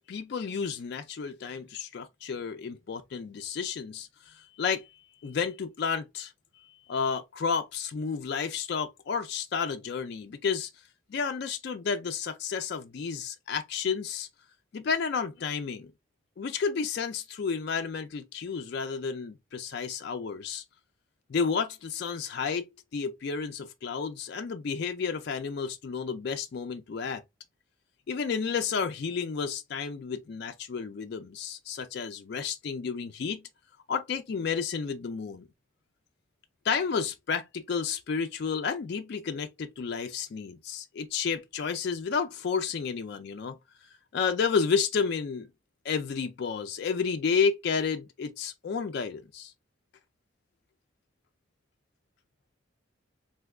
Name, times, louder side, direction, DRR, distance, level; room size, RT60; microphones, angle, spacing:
voice 1, 0.1-4.9 5.2-6.3 6.9-10.7 11.1-14.3 14.7-15.9 16.4-20.6 21.3-22.7 22.9-27.2 28.1-33.4 33.9-35.4 36.6-43.6 44.1-45.5 45.8-49.5, left 5 dB, 50° left, 0.3 m, -31 dB
3.4 x 2.8 x 2.3 m
head